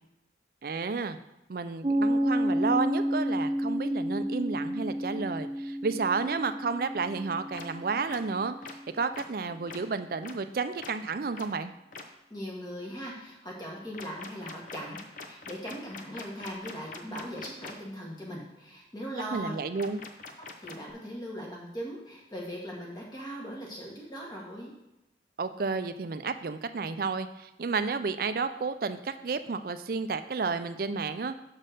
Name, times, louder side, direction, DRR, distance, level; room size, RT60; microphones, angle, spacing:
voice 1, 0.6-1.2 1.5-8.5 8.9-11.7 19.3-20.0 25.4-31.4, right 4 dB, 55° right, 10 dB, 0.4 m, -31 dB
Piano, 1.8-9.1, equal, 20° right, 0.9 m, -31 dB
sound 1, 7.5-7.6 8.1-8.2 8.6-8.7 9.1-9.2 9.7-9.8 10.2-10.3 10.8-10.9 11.3-11.5 11.9-12.0 13.9-17.7 19.7-20.9, left 4 dB, 45° left, 0.7 m, -43 dB
voice 2, 12.3-19.5 20.4-24.7, equal, 25° left, -3 dB, 1.7 m, -39 dB
6.3 x 4.3 x 6.5 m, 0.92 s
head